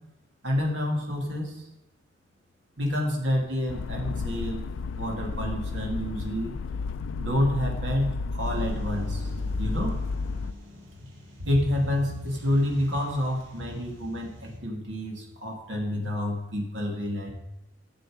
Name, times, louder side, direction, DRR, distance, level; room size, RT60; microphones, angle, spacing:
voice 1, 0.4-1.6 2.8-4.6 5.0-6.6 7.2-9.2 9.6-9.9 11.5-17.3, left 1 dB, 70° right, 0 dB, 2.3 m, -28 dB
sound 1, 3.7-10.5, left 4 dB, 90° left, 0.4 m, -32 dB
sound 2, 8.4-14.6, left 1 dB, 85° right, 2.3 m, -41 dB
12.0 x 7.0 x 5.0 m, 0.91 s
head